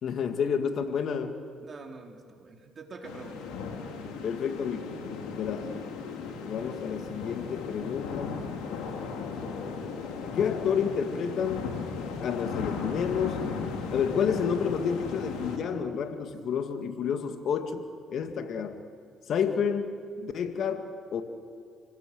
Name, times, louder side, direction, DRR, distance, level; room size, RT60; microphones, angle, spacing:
voice 1, 0.0-1.4 4.2-5.0 5.3-5.8 6.5-8.4 9.8-9.9 10.3-11.8 12.2-13.6 13.9-18.8 19.3-21.2, left 7 dB, 60° left, 7 dB, 2.0 m, -30 dB
voice 2, 1.6-3.6 19.5-19.6, right 3 dB, 45° right, 2 dB, 4.0 m, -45 dB
sound 1, 3.0-15.6, left 5 dB, 80° left, 3.2 m, -36 dB
29.0 x 19.0 x 7.9 m, 2.1 s
supercardioid pair, 70°, 0 cm